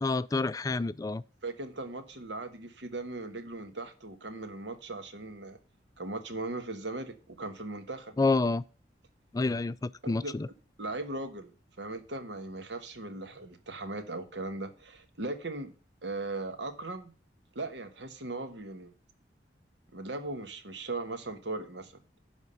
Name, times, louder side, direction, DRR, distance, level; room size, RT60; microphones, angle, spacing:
voice 1, 0.0-1.2 8.2-8.6 9.3-10.5, left 3 dB, 20° left, 0.3 m, -28 dB
voice 2, 1.4-5.6 6.0-8.2 10.0-10.3 10.8-11.5 11.8-15.7 16.0-17.1 17.5-18.9 19.9-21.9, right 2 dB, 75° right, 1.3 m, -38 dB
10.5 x 3.6 x 6.8 m
head